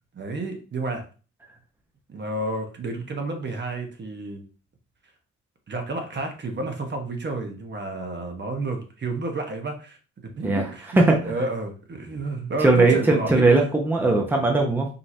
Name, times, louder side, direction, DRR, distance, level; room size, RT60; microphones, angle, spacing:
voice 1, 0.1-1.0 2.1-4.4 5.7-10.0 10.2-13.6, right 2 dB, 35° right, 4 dB, 1.0 m, -30 dB
voice 2, 11.0-11.3 12.6-14.9, right 2 dB, 5° right, 1 dB, 0.8 m, -19 dB
5.4 x 2.9 x 2.7 m, 0.36 s
cardioid pair, 90°, 30 cm